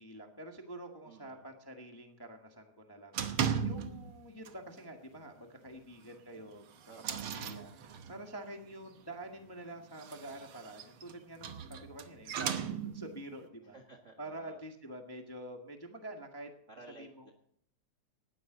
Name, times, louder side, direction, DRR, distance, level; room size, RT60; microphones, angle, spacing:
voice 1, 0.0-13.8 14.2-16.5 17.0-17.3, right 1 dB, 15° left, 3 dB, 0.8 m, -47 dB
voice 2, 1.0-1.4 6.9-7.2 13.7-14.6 16.7-17.3, right 3 dB, 35° right, 2 dB, 1.3 m, -54 dB
sound 1, 3.1-4.2 4.4-4.8 5.1-5.2 5.7-5.8 6.4-8.3 9.8-13.2, right 7 dB, 60° right, 1.6 m, -37 dB
19.0 x 14.0 x 3.9 m, 0.65 s
omnidirectional pair, 3.4 m